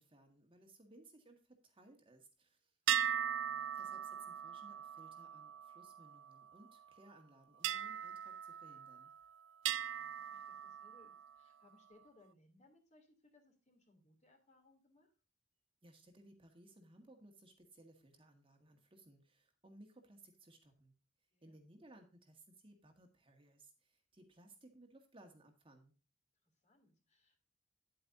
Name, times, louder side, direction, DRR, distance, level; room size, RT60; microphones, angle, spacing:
voice 1, 0.0-2.7 3.7-9.1 15.8-20.9 21.4-25.9, right 1 dB, 30° right, 4 dB, 1.7 m, -62 dB
voice 2, 2.8-3.7 9.6-15.1 21.3-21.8 26.4-27.4, left 2 dB, 40° left, 4 dB, 2.9 m, -69 dB
sound 1, 2.9-6.5 7.6-9.2 9.6-11.3, right 10 dB, 70° right, 0.4 m, -39 dB
10.0 x 8.6 x 2.6 m, 0.34 s
head